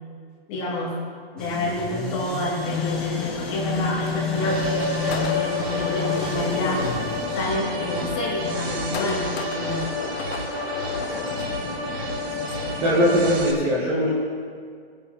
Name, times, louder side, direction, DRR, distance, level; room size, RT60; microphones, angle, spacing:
voice 1, 0.5-1.0 1.3-7.0 7.3-9.9, left 1 dB, 25° left, -5 dB, 2.5 m, -28 dB
sound 1, 1.4-7.3, left 4 dB, ahead, 0.5 m, -31 dB
sound 2, 2.6-13.1, left 9 dB, 90° left, 0.7 m, -34 dB
sound 3, 4.3-13.5, left 1 dB, 90° right, 2.6 m, -29 dB
voice 2, 12.8-14.1, equal, 20° right, -5 dB, 1.4 m, -20 dB
20.5 x 9.7 x 2.9 m, 2.1 s
hypercardioid pair, 170°, 31 cm